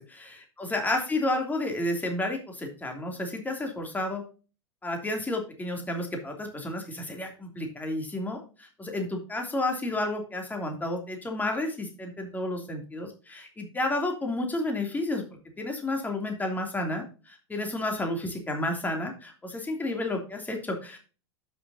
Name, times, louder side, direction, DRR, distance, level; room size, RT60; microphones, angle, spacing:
voice 1, 0.0-4.2 4.8-15.2 15.6-21.0, left 1 dB, 10° left, 3 dB, 2.9 m, -31 dB
12.5 x 6.2 x 2.8 m, 0.35 s
figure-of-eight pair, 90°, 15 cm